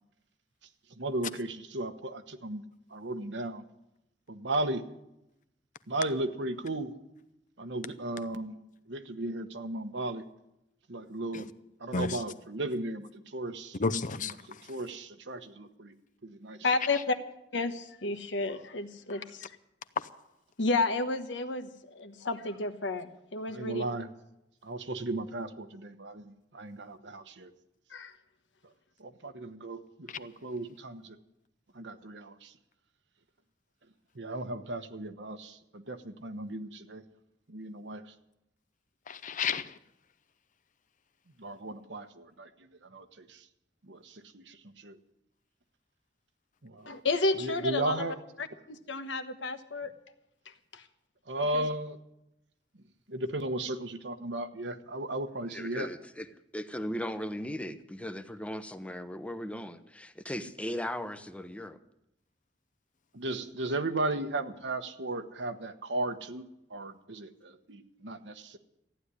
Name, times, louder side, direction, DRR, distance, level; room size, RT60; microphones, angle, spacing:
voice 1, 1.0-2.6 2.9-3.6 4.3-4.8 5.9-6.9 7.6-8.6 8.9-10.2 10.9-11.5 11.8-13.8 14.7-15.9 16.2-16.6 23.5-24.1 24.6-27.5 29.0-31.2 31.7-32.5 34.1-37.0 37.5-38.0 41.4-43.4 43.9-45.0 46.6-47.0 47.4-48.2 51.3-52.0 53.1-55.9 63.1-66.4 66.7-68.6, right 2 dB, 70° right, 1.2 m, -35 dB
voice 2, 11.9-12.2 13.8-14.8 16.9-17.0 20.0-20.1 30.1-30.2 39.1-39.8, left 5 dB, 45° left, 0.7 m, -32 dB
voice 3, 16.6-17.2 17.5-19.5 20.6-23.8 27.9-28.1 46.9-49.9 50.7-50.8 51.5-51.7, left 3 dB, 80° left, 1.2 m, -31 dB
voice 4, 55.5-56.3 56.5-61.8, equal, 5° left, 0.8 m, -37 dB
14.5 x 9.6 x 9.7 m
head